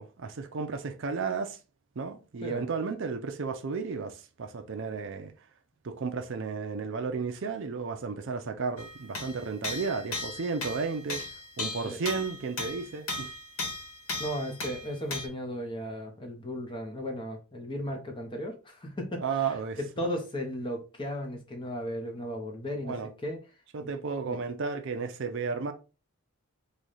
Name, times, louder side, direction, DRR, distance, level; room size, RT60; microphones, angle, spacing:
voice 1, 0.0-1.6 2.0-5.3 5.8-11.2 11.6-13.3 19.2-20.1 22.8-23.1 23.7-25.7, right 5 dB, 55° right, 0.5 m, -33 dB
sound 1, 8.8-15.3, left 2 dB, 65° left, 1.2 m, -37 dB
voice 2, 14.2-19.5 19.8-23.0 23.2-23.4 24.3-24.4, equal, 20° left, 0.7 m, -35 dB
3.2 x 2.3 x 3.9 m
head